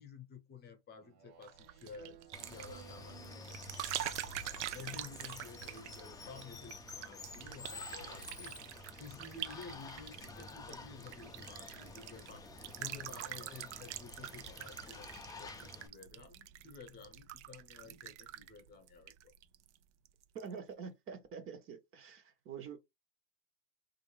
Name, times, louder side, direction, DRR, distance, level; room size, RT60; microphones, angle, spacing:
voice 1, 0.0-4.0 4.7-8.6 9.0-12.5 12.8-19.1, left 5 dB, 30° left, 1.0 m, -52 dB
Speech synthesizer, 1.0-4.0, right 11 dB, 65° right, 1.2 m, -59 dB
sound 1, 1.4-19.8 20.0-20.5, right 12 dB, 90° right, 0.6 m, -46 dB
Water, 2.3-15.9, left 4 dB, 10° left, 0.5 m, -50 dB
voice 2, 20.3-22.8, right 6 dB, 40° right, 1.1 m, -46 dB
3.4 x 2.7 x 3.3 m
supercardioid pair, 125°, 34 cm